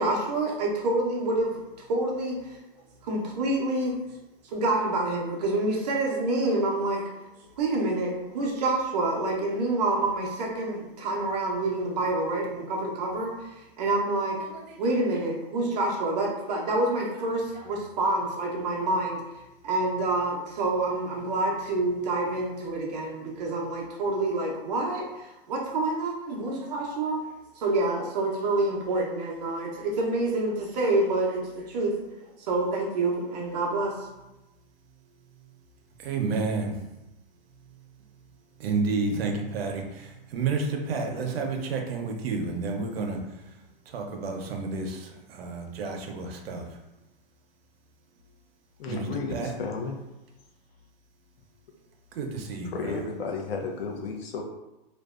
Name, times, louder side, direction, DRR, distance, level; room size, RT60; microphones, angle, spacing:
voice 1, 0.0-1.6 1.9-2.6 3.0-3.9 4.5-7.0 7.6-13.3 13.8-19.2 19.6-27.2 27.6-31.9 32.4-33.9, right 2 dB, 45° right, -1 dB, 0.6 m, -27 dB
voice 2, 36.0-36.8 38.6-43.5 43.9-46.8 48.9-49.5 52.1-53.0, right 4 dB, 85° right, 3 dB, 0.6 m, -30 dB
voice 3, 48.8-50.0 52.7-54.4, left 4 dB, 85° left, 2 dB, 0.6 m, -33 dB
2.6 x 2.1 x 2.3 m, 0.98 s
supercardioid pair, 170°, 29 cm